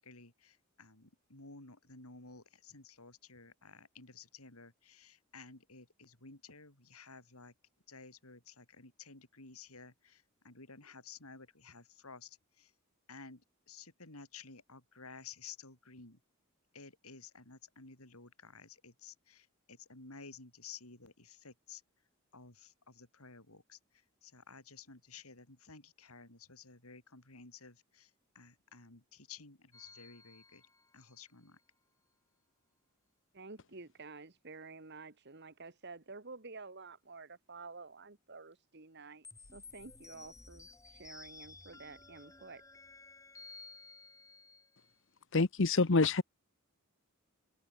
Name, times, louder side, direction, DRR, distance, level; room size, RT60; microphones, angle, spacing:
voice 1, 0.0-7.5 7.9-12.7 13.1-16.2 16.7-21.8 22.3-30.7 30.9-31.6, left 5 dB, 85° left, 5.0 m, -54 dB
sound 1, 29.7-31.3 39.2-45.0, left 3 dB, 15° left, 6.9 m, -55 dB
voice 2, 33.3-42.6, right 3 dB, 50° right, 1.7 m, -50 dB
voice 3, 45.3-46.2, left 3 dB, 60° left, 0.9 m, -26 dB
open air
head